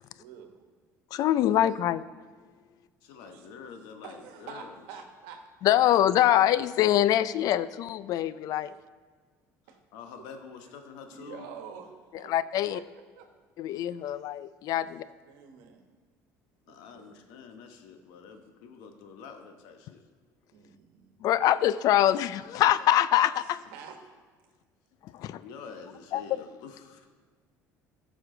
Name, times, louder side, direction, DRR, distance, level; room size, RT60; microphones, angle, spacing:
voice 1, 0.0-0.6 3.2-3.5 4.0-5.4 8.6-8.7 9.7-9.8 10.5-10.8 11.1-11.9 12.2-12.3 12.7-12.8 13.2-13.3 13.9-14.0 14.8-15.0 15.3-15.9 16.7-17.2 20.5-21.1 23.3-24.0, right 7 dB, 85° right, 5 dB, 1.3 m, -47 dB
voice 2, 1.1-2.0 5.6-8.7 12.3-12.8 13.6-15.1 21.2-23.6 25.1-25.4 26.1-26.2, left 12 dB, 65° left, 16 dB, 0.4 m, -24 dB
voice 3, 3.0-4.7 9.9-11.5 16.7-20.0 25.4-27.1, left 6 dB, 80° left, 6 dB, 1.1 m, -47 dB
14.0 x 6.3 x 3.8 m, 1.5 s
supercardioid pair, 95°, 7 cm